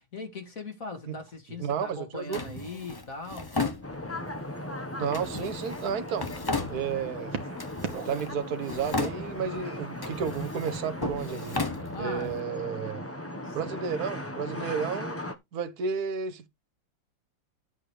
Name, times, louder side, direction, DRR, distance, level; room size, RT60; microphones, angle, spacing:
voice 1, 0.0-3.5 11.9-12.3 13.4-13.6, left 3 dB, 45° left, 2.5 m, -40 dB
voice 2, 1.6-2.4 5.0-6.3 6.7-7.4 7.9-11.6 12.0-13.0 13.5-15.2 15.5-16.5, right 7 dB, 55° right, 1.6 m, -32 dB
Drawer open or close, 2.3-4.4 5.1-7.2 7.6-8.3 8.6-9.6 9.9-12.4, left 3 dB, 30° left, 0.4 m, -35 dB
sound 1, 3.8-15.4, left 1 dB, 10° left, 0.8 m, -38 dB
sound 2, 4.2-4.6 5.3-6.7 7.3-8.2 8.5-9.9 10.8-10.9, right 6 dB, 90° right, 2.4 m, -40 dB
11.0 x 8.0 x 3.3 m
omnidirectional pair, 2.1 m